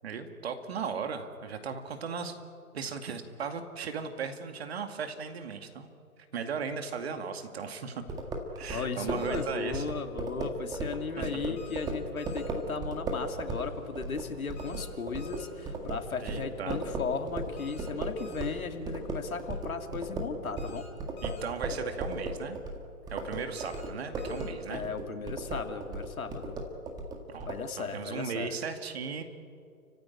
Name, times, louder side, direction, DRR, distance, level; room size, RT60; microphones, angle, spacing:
voice 1, 0.0-2.3 2.7-5.9 6.3-8.0 8.6-9.8 11.2-11.6 16.2-16.8 21.2-22.6 23.1-24.9 27.3-27.5 27.8-29.2, right 6 dB, 45° right, 7 dB, 2.3 m, -37 dB
sound 1, 8.1-18.6 18.9-27.6, right 2 dB, 10° right, 1.8 m, -36 dB
voice 2, 8.7-20.8 24.7-26.5 27.5-28.5, left 5 dB, 65° left, 6 dB, 2.8 m, -36 dB
sound 2, 9.2-9.5 11.6-11.9 12.2-12.5 14.6-14.9 15.2-15.5 17.6-17.9 18.2-18.5 20.6-20.9 21.2-21.5 23.6-23.9 24.2-24.5, left 6 dB, 20° left, 4.4 m, -52 dB
sound 3, 13.1-19.6, right 3 dB, 65° right, 7.5 m, -53 dB
30.0 x 16.0 x 10.0 m, 2.4 s
figure-of-eight pair, 145°, 46 cm